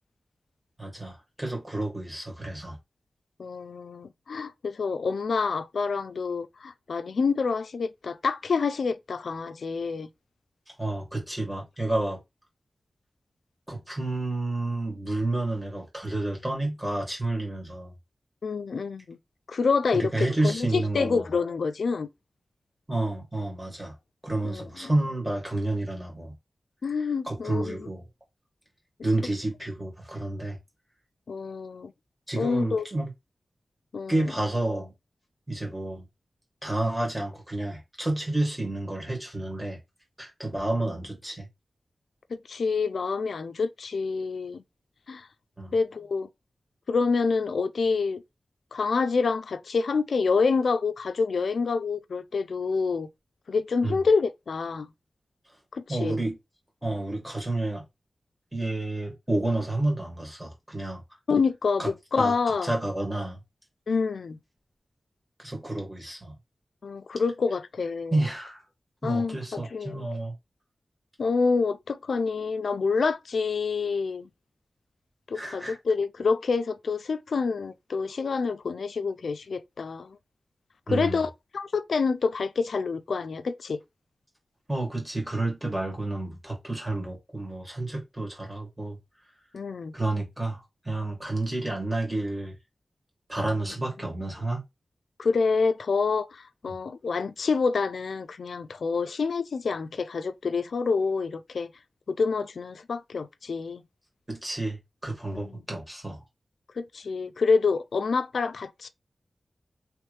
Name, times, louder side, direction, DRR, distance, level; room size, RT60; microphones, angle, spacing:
voice 1, 0.8-2.8 10.7-12.2 13.7-17.9 19.9-21.3 22.9-24.0 24.2-26.4 27.3-28.0 29.0-30.6 32.3-33.1 34.1-34.9 35.5-36.1 36.6-39.8 40.2-41.5 45.6-45.8 53.8-54.0 55.9-56.4 56.8-57.8 58.5-61.0 61.8-61.9 62.2-62.4 62.6-63.4 65.4-66.4 68.1-68.6 69.0-70.3 75.3-75.8 80.9-81.2 84.7-89.0 89.9-92.6 93.3-94.6 96.7-96.8 104.3-106.2, right 2 dB, 15° right, 1.8 m, -30 dB
voice 2, 3.4-10.1 18.4-19.2 19.5-22.1 24.4-24.9 26.8-27.9 31.3-31.9 32.4-32.9 33.9-34.2 42.3-44.6 45.1-45.3 45.7-46.3 46.9-48.2 48.7-53.1 53.5-54.9 55.7-56.1 61.3-62.7 63.9-64.4 66.8-68.2 69.0-69.4 69.7-70.1 71.2-74.3 75.3-80.2 80.9-83.8 89.5-89.9 95.2-101.7 102.1-103.8 105.3-105.6 106.8-108.9, left 4 dB, 85° left, 0.3 m, -27 dB
3.2 x 3.1 x 3.1 m
wide cardioid pair, 90°, 0 cm